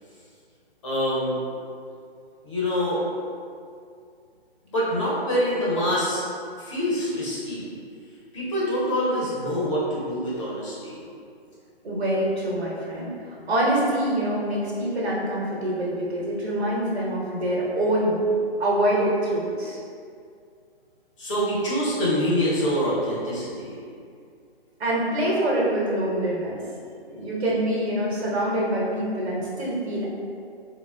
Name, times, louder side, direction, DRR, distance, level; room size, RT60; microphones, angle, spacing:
voice 1, 0.8-1.4 2.4-3.0 4.7-6.2 6.6-7.7 8.3-11.0 21.2-23.8, equal, 30° left, -7 dB, 0.6 m, -25 dB
voice 2, 11.8-18.2 18.6-19.8 24.8-26.6 27.1-30.1, right 1 dB, 80° right, -5 dB, 1.0 m, -25 dB
3.3 x 2.1 x 2.2 m, 2.3 s
hypercardioid pair, 155°, 31 cm